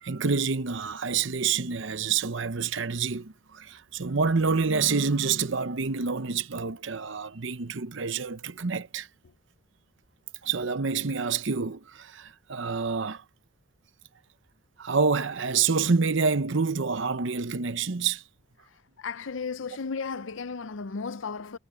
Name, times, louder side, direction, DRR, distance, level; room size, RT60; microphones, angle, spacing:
voice 1, 0.0-9.1 10.4-13.2 14.8-18.2, right 5 dB, 65° right, 0.8 m, -27 dB
voice 2, 19.0-21.6, left 5 dB, 70° left, 0.6 m, -34 dB
head